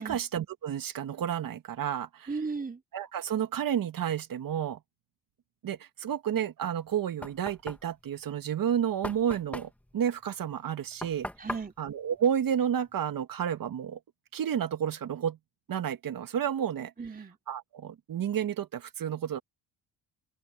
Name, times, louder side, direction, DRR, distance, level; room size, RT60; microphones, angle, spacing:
voice 1, 0.0-2.3 2.9-4.8 5.6-11.3 11.8-14.0 14.3-15.4 15.7-16.9 17.5-19.4, right 9 dB, 55° right, 1.9 m, -31 dB
voice 2, 2.3-2.8 11.4-11.7 17.0-17.4, right 4 dB, 20° right, 4.2 m, -35 dB
Knock, 6.7-13.1, left 1 dB, 5° left, 1.7 m, -42 dB
open air
cardioid pair, 85°, 41 cm